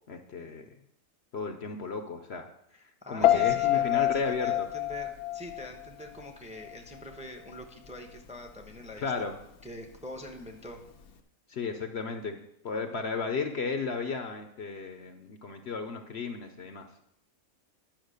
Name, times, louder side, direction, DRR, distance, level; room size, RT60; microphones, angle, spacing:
voice 1, 0.1-0.7 1.3-2.5 2.8-4.7 9.0-9.4 11.5-12.4 12.6-17.0, left 4 dB, 55° left, 7 dB, 0.9 m, -34 dB
voice 2, 3.0-9.3 9.6-10.8, left 1 dB, 5° right, 4 dB, 0.8 m, -44 dB
Piano, 3.2-6.3 6.6-7.0, left 13 dB, 85° left, 1.3 m, -27 dB
10.5 x 5.9 x 6.5 m, 0.77 s
omnidirectional pair, 1.5 m